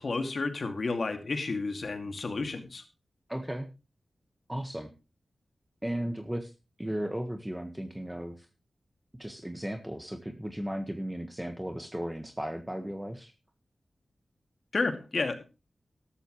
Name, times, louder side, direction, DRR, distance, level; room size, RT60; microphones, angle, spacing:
voice 1, 0.0-2.8 14.7-15.4, left 3 dB, 60° left, 7 dB, 2.4 m, -31 dB
voice 2, 3.3-3.7 4.5-4.9 5.8-6.5 6.8-8.5 9.1-13.3, right 1 dB, 10° right, 6 dB, 1.6 m, -35 dB
13.0 x 13.0 x 3.2 m, 0.30 s
cardioid pair, 60°, 0 cm